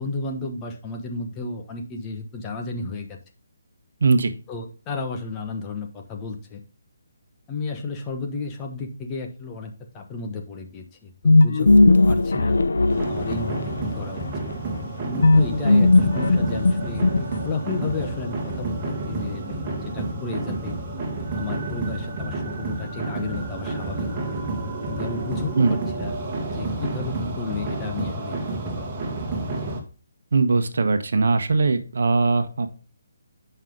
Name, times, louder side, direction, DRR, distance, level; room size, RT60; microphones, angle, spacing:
voice 1, 0.0-3.2 4.5-6.6 7.5-12.6 13.1-14.3 15.0-17.1 17.4-20.8 21.4-24.3 24.9-26.2 26.5-28.4 28.8-28.9 29.6-29.8, left 4 dB, 20° left, 3 dB, 1.1 m, -33 dB
voice 2, 4.0-4.3 25.5-25.8 30.3-32.7, right 3 dB, 70° right, 8 dB, 1.0 m, -20 dB
sound 1, 11.2-13.8 15.2-17.7, left 2 dB, 75° left, 0.7 m, -17 dB
sound 2, 12.9-29.8, right 2 dB, 25° right, 1.9 m, -30 dB
7.4 x 5.5 x 3.9 m, 0.36 s
hypercardioid pair, 155°, 0 cm